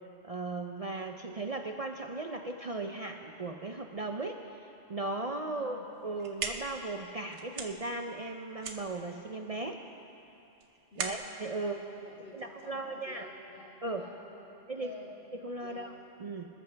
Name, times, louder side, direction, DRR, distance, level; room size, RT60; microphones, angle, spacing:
voice 1, 0.2-4.5 4.9-9.8 11.0-11.8 12.3-13.3 13.8-14.1 14.7-14.9 15.4-15.9 16.2-16.5, right 2 dB, 40° right, 3 dB, 0.6 m, -37 dB
voice 2, 5.5-5.8 10.9-11.2 11.5-15.1 15.6-15.9, left 1 dB, 70° left, -7 dB, 3.5 m, -50 dB
sound 1, 5.9-12.8, right 5 dB, 80° right, 1.3 m, -42 dB
25.5 x 13.5 x 3.4 m, 2.8 s
omnidirectional pair, 1.2 m